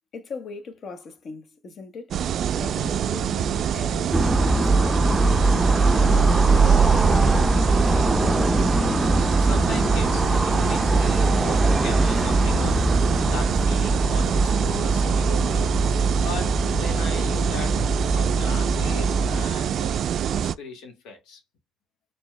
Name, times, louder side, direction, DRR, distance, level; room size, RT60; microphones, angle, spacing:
voice 1, 0.1-2.2 2.6-7.2, left 4 dB, 50° left, 1.2 m, -40 dB
sound 1, 2.1-20.6, right 9 dB, 60° right, 0.3 m, -25 dB
sound 2, 4.1-19.4, right 2 dB, 5° right, 0.6 m, -22 dB
voice 2, 9.4-12.9 13.2-15.8 16.2-17.8 18.1-20.0 20.3-21.4, left 4 dB, 85° left, 1.8 m, -38 dB
4.4 x 2.9 x 3.3 m
cardioid pair, 95°, 0 cm